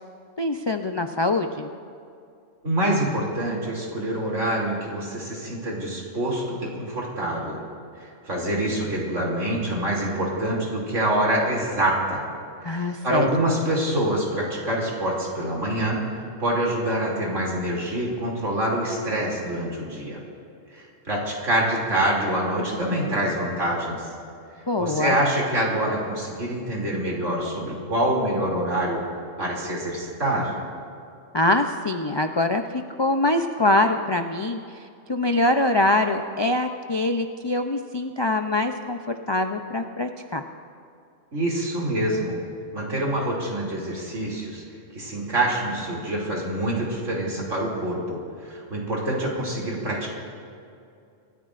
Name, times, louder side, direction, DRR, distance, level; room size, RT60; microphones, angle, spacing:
voice 1, 0.4-1.7 12.6-13.3 24.7-25.2 31.3-34.8 35.1-39.0 39.3-40.4, left 2 dB, 45° left, 5 dB, 0.3 m, -24 dB
voice 2, 2.6-7.6 8.0-12.2 12.7-16.0 16.4-20.2 20.7-24.1 24.8-29.0 29.4-30.5 41.3-42.4 42.7-44.6 44.9-50.1, right 1 dB, 70° right, -3 dB, 3.3 m, -26 dB
27.0 x 14.0 x 2.5 m, 2.5 s
omnidirectional pair, 1.3 m